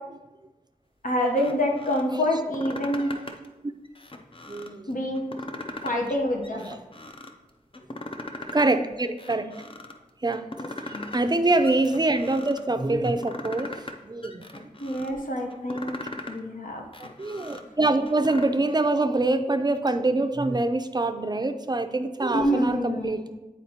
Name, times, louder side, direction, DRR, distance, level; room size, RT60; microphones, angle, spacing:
voice 1, 1.0-3.1 4.9-5.3 5.8-6.7 10.9-11.1 14.8-15.9 16.3-16.8 22.3-23.1, equal, 70° left, 0 dB, 0.9 m, -26 dB
sound 1, 1.3-2.0 2.4-3.5 3.8-4.7 5.1-6.1 6.4-7.3 7.7-8.7 9.0-9.9 10.3-11.3 11.6-12.6 13.0-14.0 14.2-15.1 15.5-16.4 16.8-18.4, left 2 dB, 40° left, 0.6 m, -39 dB
voice 2, 4.5-4.9 5.9-6.0 6.5-6.8 8.5-9.5 10.2-10.5 11.1-13.7 14.0-14.7 17.2-23.2, right 2 dB, 30° right, 8 dB, 0.5 m, -25 dB
9.3 x 4.3 x 2.8 m, 1.1 s
wide cardioid pair, 50°, 14 cm